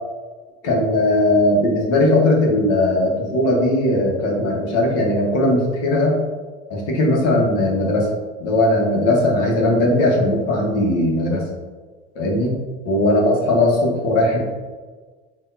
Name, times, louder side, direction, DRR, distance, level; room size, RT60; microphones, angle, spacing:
voice 1, 0.6-6.2 6.7-8.1 8.4-11.4 12.1-12.5 12.8-14.4, left 1 dB, 65° left, -2 dB, 1.5 m, -18 dB
5.5 x 2.8 x 2.8 m, 1.4 s
hypercardioid pair, 85°, 33 cm